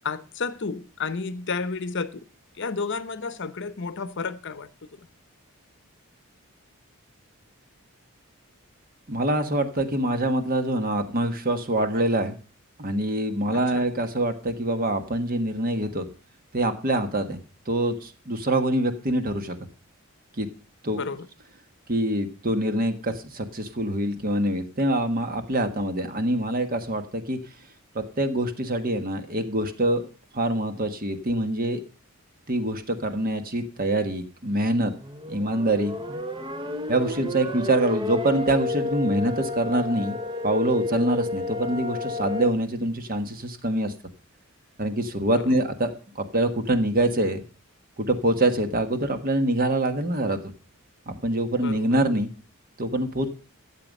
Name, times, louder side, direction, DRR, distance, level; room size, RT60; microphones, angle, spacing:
voice 1, 0.0-2.2 2.6-5.1 13.5-13.8 21.0-21.3 36.9-37.2 45.4-45.5 51.6-52.0, left 4 dB, 55° left, 0.8 m, -32 dB
voice 2, 9.1-12.3 12.8-16.0 16.5-17.4 17.7-19.6 20.4-20.5 20.8-21.0 21.9-27.4 27.9-30.0 30.3-31.8 32.5-34.9 35.3-36.2 36.9-40.2 40.4-43.9 44.8-47.4 48.0-50.4 51.1-52.3 52.8-53.3, right 1 dB, 40° right, 1.4 m, -25 dB
sound 1, 34.8-42.5, left 2 dB, 20° right, 0.8 m, -31 dB
13.0 x 7.8 x 5.3 m
head